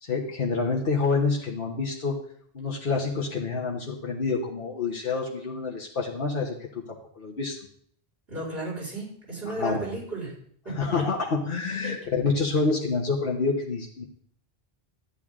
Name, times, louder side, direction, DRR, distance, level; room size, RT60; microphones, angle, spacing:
voice 1, 0.0-2.1 2.5-7.6 9.4-9.9 10.7-14.0, left 4 dB, 60° left, -3 dB, 1.5 m, -27 dB
voice 2, 8.3-10.4 10.6-10.9 11.8-11.9, right 2 dB, 70° right, -6 dB, 5.6 m, -34 dB
13.0 x 10.5 x 3.7 m, 0.63 s
omnidirectional pair, 1.0 m